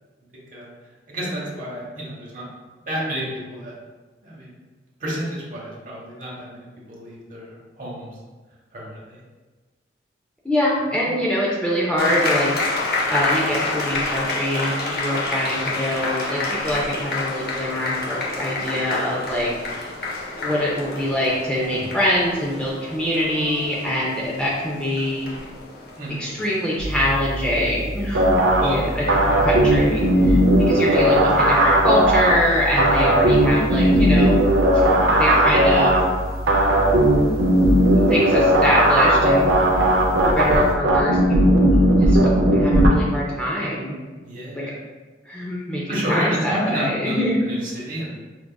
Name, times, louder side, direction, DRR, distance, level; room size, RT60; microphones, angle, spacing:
voice 1, 1.1-2.4 2.9-3.7 4.2-4.5 5.0-8.1 8.7-9.2 25.9-26.5 28.6-28.9 29.3-29.6 30.8-31.0 44.2-44.8 45.9-48.1, right 1 dB, 45° right, -4 dB, 0.9 m, -30 dB
voice 2, 10.4-12.5 12.8-19.5 20.4-25.3 26.2-28.3 28.6-34.4 34.7-34.9 35.2-36.0 38.0-39.5 40.2-41.2 41.4-41.7 42.0-42.2 42.5-44.0 44.5-44.6 45.3-47.4, left 1 dB, 5° left, -5 dB, 0.4 m, -24 dB
sound 1, 12.0-26.9, left 2 dB, 55° left, 0.7 m, -28 dB
sound 2, 26.8-40.7, right 1 dB, 20° right, 0.7 m, -31 dB
sound 3, 28.1-42.9, right 1 dB, 85° right, 0.5 m, -17 dB
4.6 x 2.4 x 2.2 m, 1.3 s
head